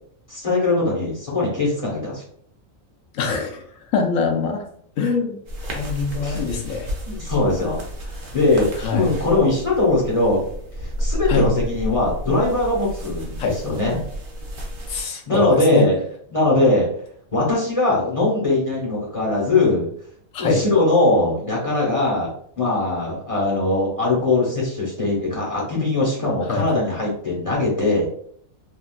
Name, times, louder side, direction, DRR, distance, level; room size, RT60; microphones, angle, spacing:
voice 1, 0.3-2.2 6.2-6.4 7.1-10.4 10.8-14.0 15.3-16.0 16.3-16.9 17.3-19.9 20.4-22.3 22.6-28.1, left 2 dB, 35° left, -4 dB, 0.6 m, -21 dB
voice 2, 3.1-3.6 3.9-4.6 5.0-5.4 5.7-6.9 8.8-9.1 11.3-11.5 13.4-13.6 14.9-15.9 20.3-20.6 26.5-26.7, left 4 dB, 85° left, 2 dB, 1.0 m, -23 dB
sound 1, 5.5-15.1, equal, 50° right, 0.7 m, -31 dB
3.4 x 2.3 x 2.3 m, 0.62 s
omnidirectional pair, 1.4 m